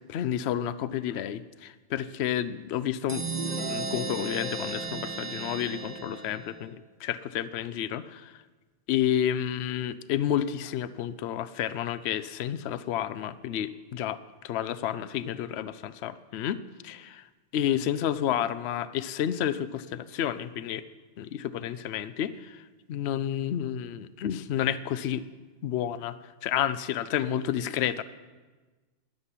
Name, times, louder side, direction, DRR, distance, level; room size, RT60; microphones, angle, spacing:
voice 1, 0.1-3.2 3.6-8.3 8.9-14.2 14.4-17.3 17.5-20.8 21.2-25.2 25.6-28.0, left 10 dB, 65° left, 15 dB, 0.8 m, -30 dB
sound 1, 3.1-6.6, right 3 dB, 35° right, 1.4 m, -34 dB
12.5 x 8.0 x 9.8 m, 1.3 s
omnidirectional pair, 1.2 m